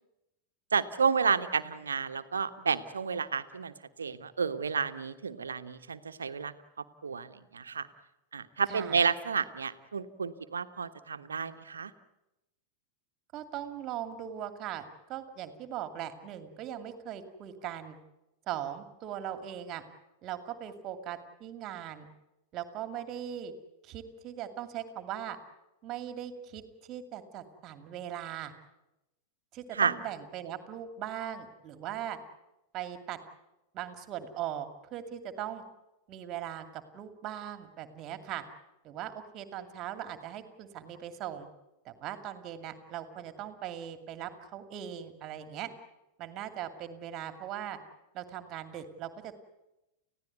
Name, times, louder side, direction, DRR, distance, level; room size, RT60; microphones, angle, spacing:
voice 1, 0.7-3.7 4.0-6.5 7.0-7.9 8.3-11.9 29.7-29.9, right 6 dB, 70° right, 10 dB, 1.3 m, -31 dB
voice 2, 13.3-18.0 18.5-19.8 20.2-22.1 22.5-23.5 23.8-25.4 25.8-28.5 29.5-32.2 32.7-33.2 33.7-35.6 36.1-38.4 38.8-41.5 41.8-45.7 46.2-47.8 48.1-49.4, right 10 dB, 35° right, 9 dB, 2.4 m, -39 dB
30.0 x 16.0 x 9.5 m, 0.96 s
figure-of-eight pair, 90°, 0 cm